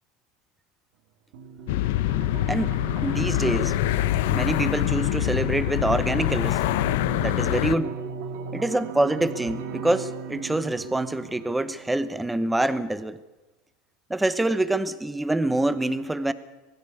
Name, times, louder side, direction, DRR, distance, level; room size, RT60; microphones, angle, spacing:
sound 1, 1.3-12.3, right 5 dB, 70° right, 2.3 m, -38 dB
sound 2, 1.7-7.8, left 15 dB, 75° left, 0.8 m, -25 dB
voice 1, 2.4-3.7 4.3-6.6 7.1-8.0 8.5-13.2 14.1-16.3, right 1 dB, 5° right, 14 dB, 0.9 m, -26 dB
20.5 x 15.5 x 8.3 m, 1.1 s
supercardioid pair, 145°, 0 cm